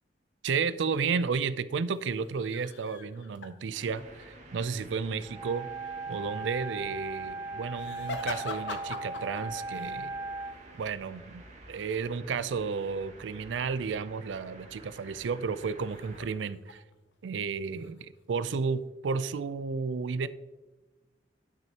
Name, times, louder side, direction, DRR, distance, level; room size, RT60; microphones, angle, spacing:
voice 1, 0.4-5.7 6.1-10.2 10.8-16.8 17.2-20.3, right 5 dB, 85° right, 15 dB, 0.4 m, -32 dB
sound 1, 1.8-4.1 7.7-10.0 10.4-10.6 15.9-17.2 17.5-18.6 19.2-19.6, left 3 dB, 75° left, 0.9 m, -43 dB
sound 2, 3.7-16.2, right 2 dB, 40° right, 1.7 m, -51 dB
Wind instrument woodwind instrument, 5.3-10.6, right 3 dB, 15° right, 0.4 m, -38 dB
10.0 x 6.3 x 2.8 m, 1.1 s
head